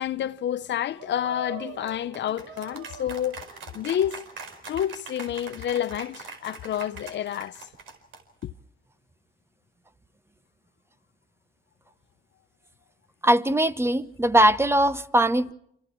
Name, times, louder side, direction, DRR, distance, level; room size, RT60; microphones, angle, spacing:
voice 1, 0.0-3.4 3.7-4.2 4.7-7.7 8.4-8.5, left 10 dB, 65° left, 0.8 m, -29 dB
sound 1, 1.0-8.4, right 2 dB, 75° right, 4.7 m, -41 dB
voice 2, 13.2-15.5, right 1 dB, 10° right, 1.0 m, -21 dB
29.0 x 26.0 x 4.7 m
cardioid pair, 90°, 20 cm